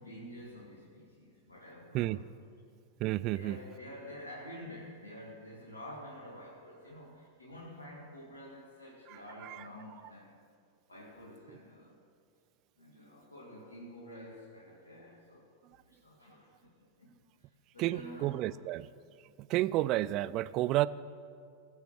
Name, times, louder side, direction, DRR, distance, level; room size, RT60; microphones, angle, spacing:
voice 1, 0.0-2.3 3.3-10.4 10.9-12.0 12.8-15.5 15.9-18.4, left 1 dB, 75° left, -4 dB, 2.4 m, -49 dB
voice 2, 3.0-3.6 17.8-18.9 19.5-20.9, right 16 dB, 40° right, 17 dB, 0.4 m, -30 dB
21.0 x 7.3 x 6.1 m, 2.2 s
figure-of-eight pair, 90°, 0 cm